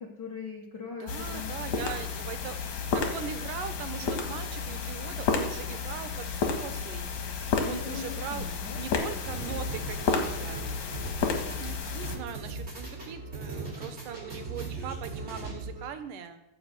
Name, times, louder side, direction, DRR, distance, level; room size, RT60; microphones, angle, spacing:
voice 1, 0.0-2.0 7.7-8.8 9.1-9.2, left 5 dB, 85° left, 1 dB, 0.9 m, -41 dB
voice 2, 1.0-2.6 2.9-7.1 7.4-8.5 8.8-10.7 11.6-16.4, right 8 dB, 75° right, 9 dB, 2.4 m, -40 dB
sound 1, 1.1-12.2, left 5 dB, 65° left, 2.6 m, -32 dB
sound 2, 9.2-15.9, right 3 dB, 20° right, 3.3 m, -39 dB
14.5 x 5.5 x 7.6 m, 0.90 s
omnidirectional pair, 4.0 m